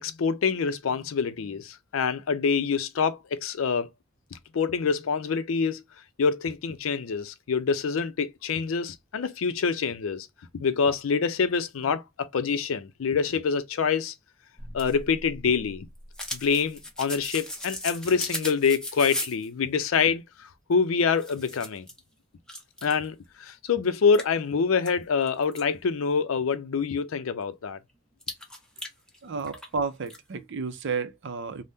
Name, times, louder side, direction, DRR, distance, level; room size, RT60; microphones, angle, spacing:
voice 1, 0.0-3.9 4.3-5.8 6.2-10.3 10.5-14.1 14.7-15.9 16.3-21.9 22.8-27.8, left 5 dB, 75° left, 0.4 m, -26 dB
sound 1, 14.6-19.5 20.7-20.8 21.1-22.0 22.5-23.1 23.5-23.6 24.1-25.6 28.2-29.7 30.0-30.2, left 1 dB, 5° left, 0.7 m, -37 dB
voice 2, 29.2-31.6, right 5 dB, 60° right, 0.5 m, -32 dB
3.4 x 2.1 x 2.6 m
head